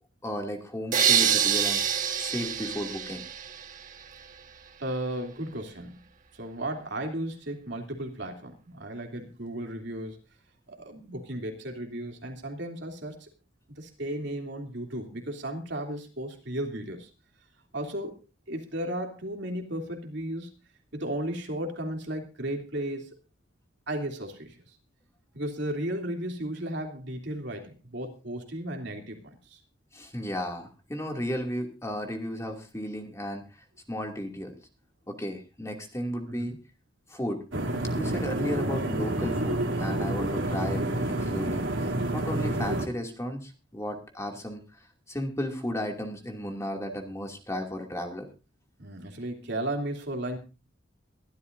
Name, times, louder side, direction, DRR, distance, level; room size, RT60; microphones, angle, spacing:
voice 1, 0.2-3.2 29.9-33.4 33.9-34.5 35.1-36.5 37.1-37.4 37.9-44.6 45.1-48.3, equal, 15° left, 2 dB, 2.6 m, -34 dB
sound 1, 0.9-3.9, right 8 dB, 40° right, 1.4 m, -26 dB
voice 2, 4.8-6.0 6.3-10.2 10.7-13.3 13.7-17.1 17.7-20.5 20.9-23.1 23.9-24.8 25.3-29.6 36.3-36.6 48.8-50.4, right 1 dB, 60° right, 3 dB, 3.1 m, -35 dB
sound 2, 37.5-42.9, right 1 dB, 80° right, 3.1 m, -29 dB
23.5 x 12.5 x 2.7 m, 0.30 s
head